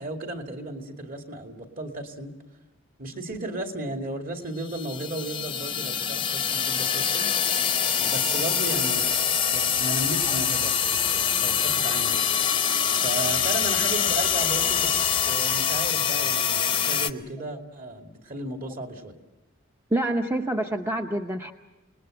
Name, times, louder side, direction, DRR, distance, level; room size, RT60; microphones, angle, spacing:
voice 1, 0.0-2.3 3.0-7.3 8.0-9.0 9.5-12.3 13.0-19.1, right 1 dB, 40° right, 4 dB, 2.6 m, -34 dB
sound 1, 4.7-17.1, left 8 dB, 25° left, 0.8 m, -24 dB
voice 2, 19.9-21.5, right 1 dB, 10° right, 4 dB, 0.8 m, -26 dB
27.5 x 20.0 x 7.9 m, 1.1 s
head